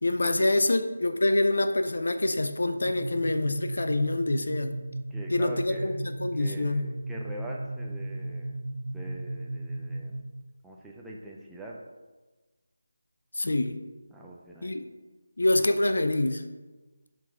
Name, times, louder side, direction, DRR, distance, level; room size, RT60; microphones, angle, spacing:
voice 1, 0.0-4.7 5.3-6.9 13.3-13.8 14.6-14.9 15.4-16.4, left 2 dB, 60° left, 9 dB, 0.5 m, -26 dB
sound 1, 2.8-10.4, right 1 dB, 35° right, 0.9 m, -36 dB
voice 2, 5.1-5.9 6.3-8.5 8.9-10.2 10.6-11.8 14.1-14.8, right 1 dB, ahead, -4 dB, 0.6 m, -43 dB
7.4 x 3.9 x 5.1 m, 1.2 s
figure-of-eight pair, 160°, 0 cm